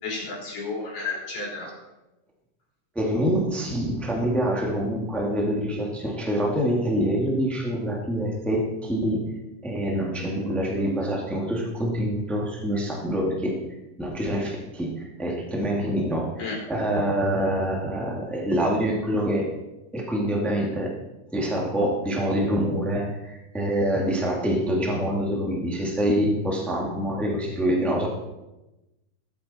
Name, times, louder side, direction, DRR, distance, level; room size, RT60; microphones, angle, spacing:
voice 1, 0.0-1.7 16.4-16.6, left 3 dB, 80° left, -4 dB, 5.8 m, -32 dB
voice 2, 2.9-9.3 9.6-13.7 14.0-16.3 16.7-19.5 19.9-20.9 21.3-28.1, equal, ahead, -1 dB, 1.6 m, -25 dB
21.0 x 8.5 x 4.3 m, 1.0 s
omnidirectional pair, 3.8 m